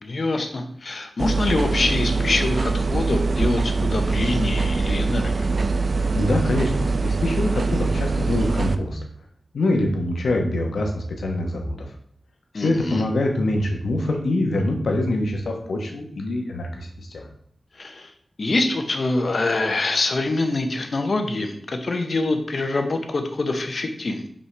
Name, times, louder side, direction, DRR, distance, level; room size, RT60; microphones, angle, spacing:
voice 1, 0.0-5.5 12.5-13.0 17.8-18.1 18.4-24.3, left 2 dB, 50° left, 6 dB, 0.8 m, -25 dB
sound 1, 1.2-8.8, right 3 dB, 50° right, 0.4 m, -23 dB
voice 2, 6.1-9.0 9.5-11.9 12.5-17.3, left 1 dB, 90° left, 2 dB, 1.1 m, -24 dB
5.5 x 5.4 x 3.3 m, 0.63 s
wide cardioid pair, 110°, 0 cm